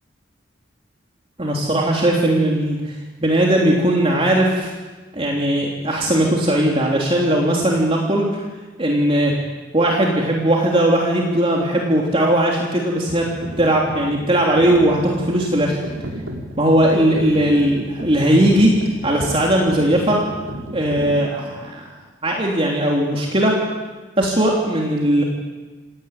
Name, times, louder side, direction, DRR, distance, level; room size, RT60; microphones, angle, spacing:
voice 1, 1.4-2.8 3.2-4.7 5.1-8.4 8.8-9.3 9.7-13.3 13.6-15.8 16.6-18.8 19.0-20.2 20.7-21.8 22.2-23.6 24.2-25.2, right 1 dB, 30° right, -2 dB, 3.3 m, -18 dB
sound 1, 13.2-21.2, equal, 85° right, 4.2 m, -33 dB
28.5 x 17.5 x 9.2 m, 1.3 s
head